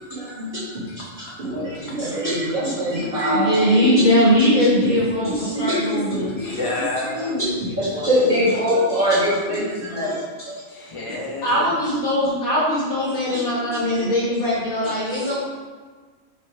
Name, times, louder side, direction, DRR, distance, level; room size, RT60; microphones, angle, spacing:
voice 1, 0.0-0.9 1.2-4.0 4.8-6.6 7.0-10.6 13.0-14.1 14.8-15.3, equal, 40° right, -12 dB, 1.9 m, -24 dB
voice 2, 3.3-6.3 11.4-15.3, equal, 80° left, -10 dB, 2.7 m, -20 dB
voice 3, 6.4-8.1 10.7-11.8 13.9-14.0, left 2 dB, 25° left, -4 dB, 1.1 m, -31 dB
5.6 x 4.1 x 4.7 m, 1.4 s
omnidirectional pair, 1.5 m